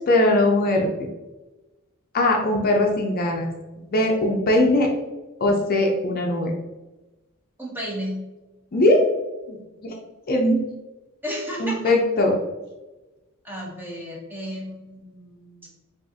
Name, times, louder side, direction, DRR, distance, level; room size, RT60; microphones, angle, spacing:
voice 1, 0.1-0.9 2.1-3.5 3.9-4.9 5.4-6.5 8.7-9.0 9.5-9.6 9.8-9.9 10.3-10.7 11.6-12.3, left 1 dB, 45° left, 1 dB, 0.5 m, -20 dB
voice 2, 7.6-8.2 11.2-11.9 13.4-15.7, equal, 10° right, -3 dB, 0.9 m, -33 dB
4.9 x 2.4 x 2.7 m, 1.1 s
head